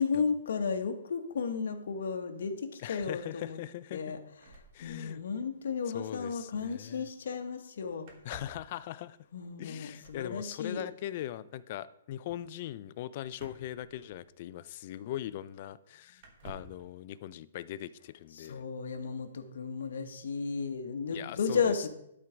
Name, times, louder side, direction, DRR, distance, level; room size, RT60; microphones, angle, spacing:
voice 1, 0.0-3.6 3.9-4.2 4.8-8.1 9.3-10.8 18.4-21.9, left 5 dB, 70° left, 6 dB, 1.2 m, -33 dB
voice 2, 2.8-4.1 4.7-5.2 5.9-7.1 8.2-9.2 9.6-18.6 21.1-21.7, left 13 dB, 35° left, 16 dB, 0.3 m, -40 dB
sound 1, 4.4-5.5 5.7-5.8 6.0-6.2 8.0-8.7 10.0-10.4 13.3-14.5 15.4-15.5 16.2-16.9, right 2 dB, 35° right, 1.3 m, -52 dB
11.5 x 4.5 x 5.0 m, 0.78 s
hypercardioid pair, 165°, 0 cm